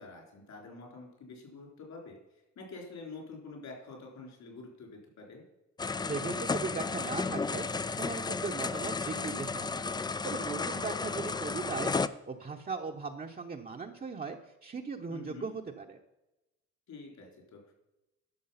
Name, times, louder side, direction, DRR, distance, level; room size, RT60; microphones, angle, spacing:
voice 1, 0.0-5.4 10.7-11.2 15.1-15.5 16.9-17.7, left 3 dB, 65° left, 0 dB, 3.9 m, -47 dB
sound 1, 5.8-12.1, left 4 dB, 15° left, 0.3 m, -33 dB
voice 2, 6.0-9.8 10.2-12.0 12.3-16.0, right 5 dB, 30° right, 1 dB, 0.9 m, -38 dB
12.0 x 6.2 x 5.7 m, 0.96 s
cardioid pair, 90°, 30 cm